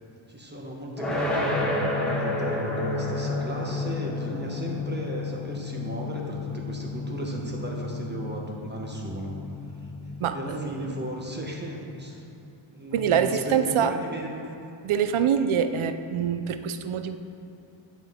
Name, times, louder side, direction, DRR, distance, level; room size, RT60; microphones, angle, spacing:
voice 1, 0.3-9.4 9.8-9.9 10.3-12.2 12.7-14.4, right 1 dB, 20° right, -1 dB, 1.2 m, -35 dB
sound 1, 1.0-11.9, left 2 dB, ahead, 1.4 m, -31 dB
voice 2, 10.2-11.1 12.9-13.9 14.8-17.2, right 8 dB, 80° right, 10 dB, 0.5 m, -25 dB
8.9 x 5.6 x 3.6 m, 2.6 s
wide cardioid pair, 75°, 48 cm